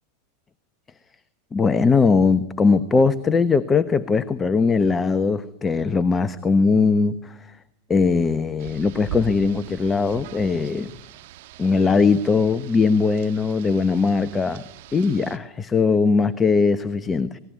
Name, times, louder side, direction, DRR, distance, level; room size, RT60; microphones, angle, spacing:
voice 1, 1.5-7.4 7.9-10.9 11.6-14.6 14.9-17.4, left 4 dB, 20° left, 14 dB, 1.1 m, -20 dB
Rain, 8.6-15.4, right 12 dB, 55° right, 1.7 m, -41 dB
27.5 x 20.0 x 9.6 m, 0.86 s
figure-of-eight pair, 85°, 0 cm